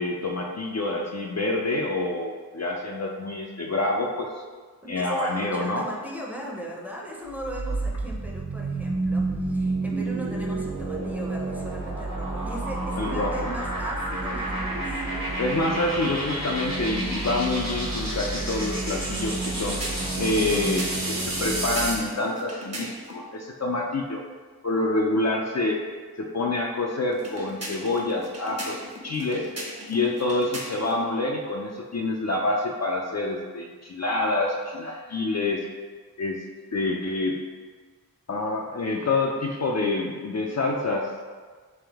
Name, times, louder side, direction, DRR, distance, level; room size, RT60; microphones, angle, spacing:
voice 1, 0.0-4.3 4.9-5.8 13.0-13.5 15.4-19.8 20.2-24.2 24.6-25.8 26.2-29.5 29.9-35.6 36.2-36.4 36.7-37.4 38.3-41.1, left 2 dB, 45° left, 0 dB, 0.4 m, -27 dB
voice 2, 4.8-15.3, equal, 5° right, -2 dB, 0.6 m, -38 dB
sound 1, 7.3-22.1, right 2 dB, 65° right, 1.4 m, -29 dB
sound 2, 19.3-23.2 27.1-31.0, right 1 dB, 40° right, 0.8 m, -38 dB
3.5 x 3.2 x 3.4 m, 1.5 s
wide cardioid pair, 45°, 37 cm